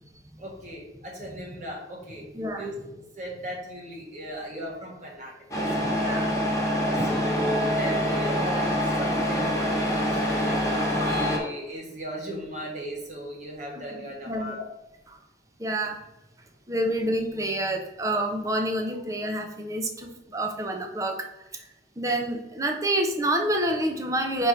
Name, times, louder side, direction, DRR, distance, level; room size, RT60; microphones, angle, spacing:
voice 1, 0.4-2.2 2.6-6.1 6.9-8.7 9.0-10.6 10.9-14.6, equal, 40° right, -2 dB, 1.4 m, -36 dB
voice 2, 2.3-2.7 5.9-6.3 11.0-11.3 14.3-14.6 15.6-16.0 16.7-21.2 21.5-21.6 22.0-24.5, right 1 dB, 20° right, 3 dB, 0.8 m, -28 dB
Truck, 5.5-11.4, equal, 20° left, 1.4 m, -25 dB
4.7 x 4.3 x 5.0 m, 0.91 s
head